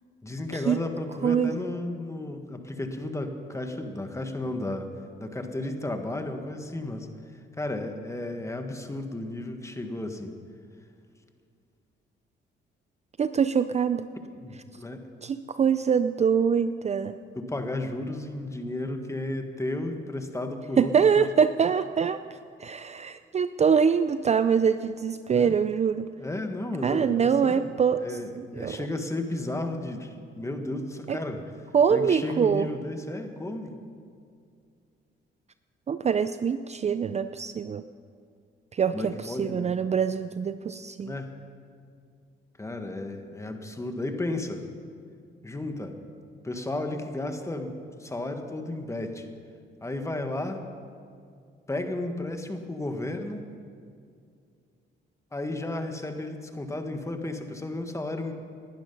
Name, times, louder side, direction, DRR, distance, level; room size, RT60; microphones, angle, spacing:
voice 1, 0.2-4.9 5.2-7.1 7.6-10.3 14.4-15.1 17.3-21.2 25.3-25.6 26.2-27.7 28.0-31.4 31.9-33.7 38.9-39.7 41.0-41.3 42.6-44.6 45.4-45.9 46.4-47.7 48.0-49.3 49.8-50.6 51.7-53.4 55.3-58.3, left 2 dB, 15° left, 5 dB, 1.6 m, -33 dB
voice 2, 13.2-14.1 15.2-17.2 20.8-22.2 22.6-26.1 26.8-28.0 28.6-28.8 31.1-31.2 31.7-32.7 35.9-37.8 38.7-41.1, right 7 dB, 35° right, 12 dB, 0.5 m, -24 dB
19.5 x 11.5 x 5.4 m, 2.3 s
cardioid pair, 90°, 20 cm